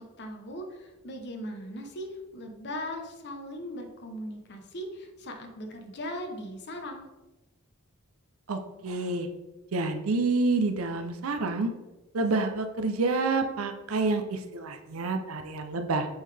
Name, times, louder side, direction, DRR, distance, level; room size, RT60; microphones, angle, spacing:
voice 1, 0.0-7.1, equal, 55° left, 4 dB, 0.9 m, -39 dB
voice 2, 8.5-9.3 9.7-11.7 12.1-16.1, right 3 dB, 80° right, 7 dB, 0.6 m, -28 dB
7.9 x 3.8 x 3.3 m, 1.1 s
head